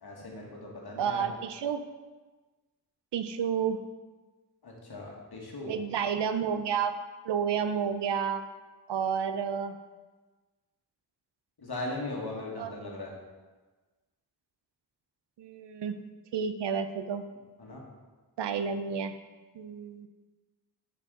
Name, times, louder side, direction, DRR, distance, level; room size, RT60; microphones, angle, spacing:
voice 1, 0.0-1.3 4.6-5.7 11.6-13.1 17.6-17.8, left 2 dB, 65° left, -2 dB, 1.5 m, -38 dB
voice 2, 1.0-1.8 3.1-3.8 5.7-7.0 7.2-8.4 8.9-9.8 12.4-12.7 15.4-16.0 16.3-17.3 18.4-19.1 19.5-20.1, right 7 dB, 80° right, 9 dB, 0.5 m, -30 dB
6.2 x 4.6 x 3.7 m, 1.3 s
cardioid pair, 50°, 41 cm